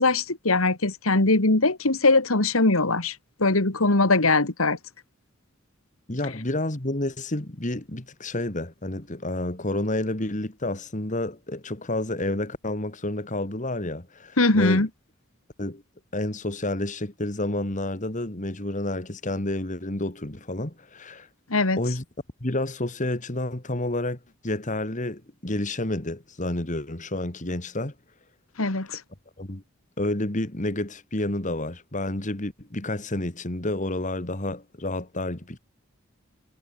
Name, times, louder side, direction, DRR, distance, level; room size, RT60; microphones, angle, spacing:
voice 1, 0.0-3.1 3.4-4.8 14.4-14.9 21.5-21.8 28.6-29.0, left 2 dB, 85° left, 2.4 m, -21 dB
voice 2, 6.1-14.9 15.6-15.8 16.1-21.3 21.7-22.0 22.4-27.9 29.4-29.6 30.0-35.6, left 1 dB, 35° left, 2.3 m, -30 dB
head